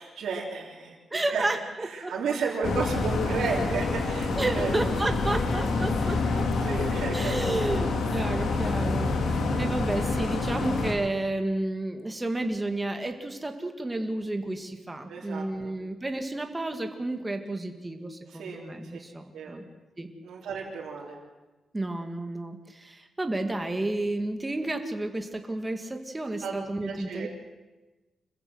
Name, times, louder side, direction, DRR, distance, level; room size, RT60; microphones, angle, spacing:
voice 1, 0.0-1.5 1.9-4.7 6.0-6.2 6.6-7.8 9.5-9.7 15.1-15.7 18.3-18.6 19.3-19.6 20.2-21.2 26.4-27.3, right 4 dB, 75° right, -4 dB, 3.6 m, -33 dB
voice 2, 1.1-2.1 4.4-6.4 7.1-9.1 9.6-19.6 20.0-20.1 21.7-27.3, right 2 dB, 15° right, 5 dB, 2.0 m, -31 dB
sound 1, 2.6-10.9, left 3 dB, 65° left, 3.1 m, -27 dB
26.0 x 15.0 x 7.9 m, 1.2 s
wide cardioid pair, 145°, 0 cm